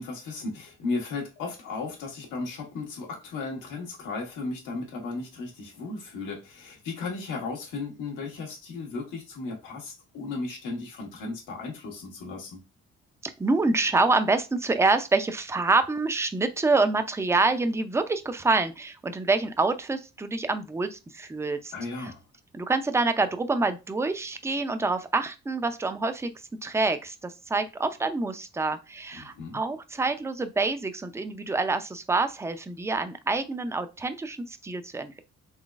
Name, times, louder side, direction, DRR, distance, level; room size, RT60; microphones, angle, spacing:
voice 1, 0.0-12.6 21.7-22.2 29.1-29.6, left 3 dB, 90° left, 1.5 m, -35 dB
voice 2, 13.2-22.1 22.5-26.3 26.6-35.2, right 3 dB, 10° right, 0.4 m, -26 dB
3.9 x 3.1 x 2.4 m
cardioid pair, 90°, 30 cm